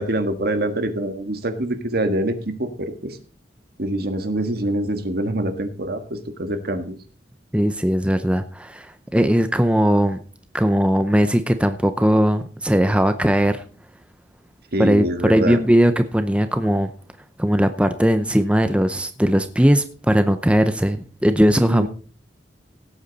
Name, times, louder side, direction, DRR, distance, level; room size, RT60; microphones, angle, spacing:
voice 1, 0.0-3.2 3.8-7.0 14.7-15.6 21.7-21.9, right 1 dB, 60° right, 8 dB, 1.6 m, -25 dB
voice 2, 7.5-10.2 10.5-13.6 14.8-16.9 17.4-21.9, equal, 5° right, 9 dB, 0.6 m, -19 dB
17.0 x 8.4 x 4.1 m, 0.41 s
head